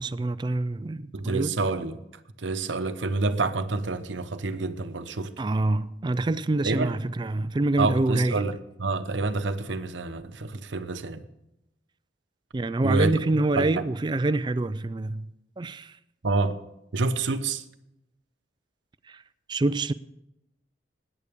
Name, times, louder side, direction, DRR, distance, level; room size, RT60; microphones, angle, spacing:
voice 1, 0.0-1.5 5.4-8.4 12.5-15.3 15.6-16.0 19.1-19.2 19.5-19.9, right 2 dB, 25° right, 0.3 m, -26 dB
voice 2, 1.1-2.0 2.4-5.3 6.6-6.9 7.8-11.3 12.8-13.1 13.5-13.9 16.2-16.6 16.9-17.6, right 3 dB, 90° right, 0.9 m, -28 dB
20.5 x 9.8 x 3.5 m
head